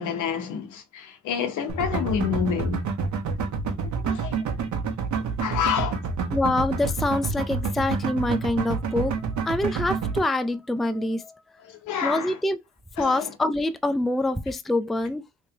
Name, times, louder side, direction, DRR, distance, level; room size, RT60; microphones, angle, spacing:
voice 1, 0.0-2.8 4.0-4.4 5.4-6.0 11.6-12.4 13.0-13.3, left 8 dB, 75° left, 1.0 m, -28 dB
sound 1, 1.7-10.2, right 5 dB, 75° right, 1.1 m, -28 dB
voice 2, 6.3-9.1 9.4-11.4 12.0-12.6 13.0-15.2, left 2 dB, ahead, 0.3 m, -25 dB
3.2 x 3.1 x 2.8 m
cardioid pair, 90°, 30 cm